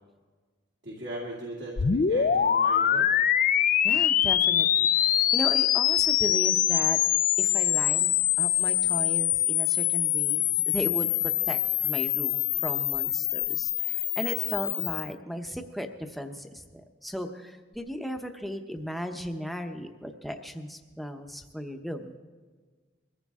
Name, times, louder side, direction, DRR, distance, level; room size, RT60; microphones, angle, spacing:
voice 1, 0.8-3.1, right 1 dB, 70° right, -4 dB, 2.3 m, -39 dB
sound 1, 1.8-15.1, left 11 dB, 45° left, 0.4 m, -24 dB
voice 2, 3.8-7.0 7.4-22.2, equal, ahead, 5 dB, 0.8 m, -36 dB
22.0 x 14.5 x 3.6 m, 1.4 s
head